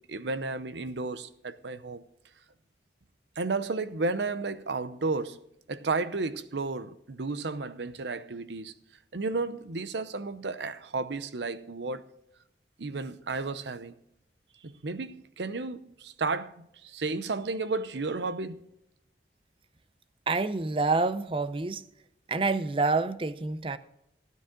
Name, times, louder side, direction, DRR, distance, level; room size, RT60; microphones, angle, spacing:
voice 1, 0.0-2.0 3.4-5.4 5.7-8.7 9.1-12.0 12.8-13.9 14.6-18.7, right 3 dB, 80° right, 0.7 m, -33 dB
voice 2, 20.3-21.8 22.3-23.8, right 3 dB, 30° right, 0.6 m, -27 dB
15.5 x 9.2 x 3.8 m
head